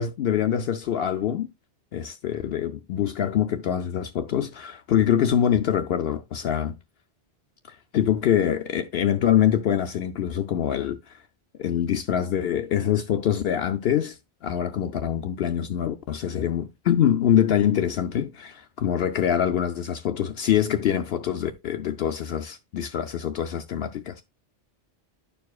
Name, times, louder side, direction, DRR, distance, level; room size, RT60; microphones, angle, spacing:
voice 1, 0.0-1.5 1.9-6.7 7.7-11.2 11.6-24.2, left 10 dB, 70° left, 0.8 m, -24 dB
12.0 x 4.7 x 2.3 m
omnidirectional pair, 1.1 m